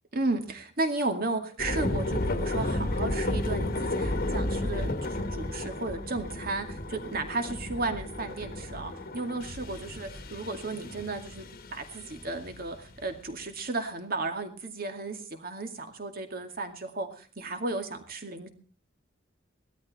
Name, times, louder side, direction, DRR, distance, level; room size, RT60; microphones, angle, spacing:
voice 1, 0.1-18.5, right 3 dB, 45° right, 6 dB, 2.2 m, -34 dB
sound 1, 1.6-13.1, left 1 dB, 45° left, 1.4 m, -33 dB
18.0 x 13.0 x 4.2 m, 0.38 s
head